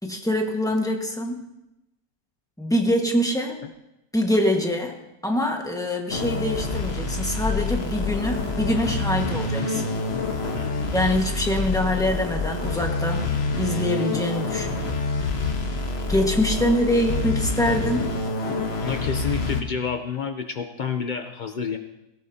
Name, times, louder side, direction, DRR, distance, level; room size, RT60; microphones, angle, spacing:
voice 1, 0.0-1.4 2.6-3.6 4.1-5.0 5.2-9.9 10.9-13.3 13.6-14.8 16.1-18.0, equal, ahead, 2 dB, 1.3 m, -24 dB
sound 1, 6.1-19.6, left 3 dB, 45° left, 1.2 m, -27 dB
voice 2, 10.5-11.0 16.6-16.7 17.1-17.3 18.8-21.8, left 6 dB, 75° left, 6 dB, 0.4 m, -30 dB
17.5 x 17.5 x 2.8 m, 0.91 s
omnidirectional pair, 1.8 m